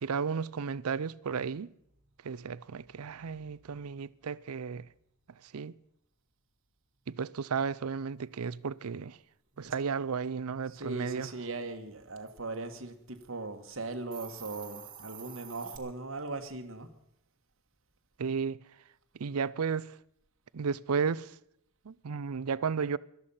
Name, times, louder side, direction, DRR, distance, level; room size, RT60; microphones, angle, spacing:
voice 1, 0.0-1.7 2.2-4.9 5.4-5.8 7.1-9.2 9.6-11.3 18.2-18.6 19.1-20.0 20.5-21.4 21.8-23.0, right 6 dB, 85° right, 0.5 m, -33 dB
voice 2, 10.7-16.9, right 3 dB, 60° right, 1.5 m, -39 dB
sound 1, 11.0-11.6 12.5-12.7 14.5-14.8, equal, 80° left, 6.2 m, -59 dB
Hiss, 14.1-15.8, right 9 dB, 35° right, 1.7 m, -47 dB
18.0 x 13.0 x 5.6 m
head